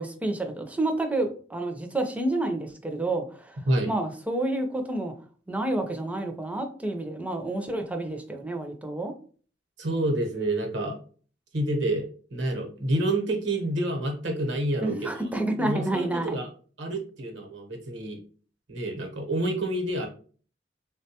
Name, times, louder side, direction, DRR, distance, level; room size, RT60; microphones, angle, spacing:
voice 1, 0.0-3.6 3.9-5.1 5.5-9.1 14.8-16.4, right 2 dB, 10° right, 5 dB, 0.4 m, -29 dB
voice 2, 9.8-11.0 11.5-15.1 15.6-16.5 16.8-18.2 18.7-20.1, right 1 dB, 80° right, 3 dB, 0.9 m, -28 dB
3.6 x 2.2 x 2.8 m, 0.41 s
head